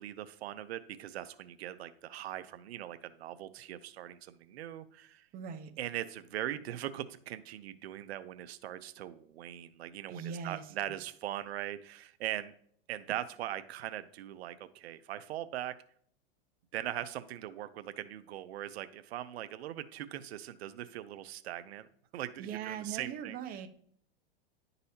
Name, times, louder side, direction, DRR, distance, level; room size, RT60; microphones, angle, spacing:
voice 1, 0.0-5.3 5.8-12.5 12.9-15.7 16.7-21.9 22.1-23.4, right 12 dB, 80° right, 12 dB, 0.5 m, -40 dB
voice 2, 5.3-5.7 10.1-10.7 22.4-23.7, right 8 dB, 30° right, 6 dB, 0.7 m, -40 dB
10.5 x 4.0 x 2.7 m, 0.62 s
hypercardioid pair, 120°, 31 cm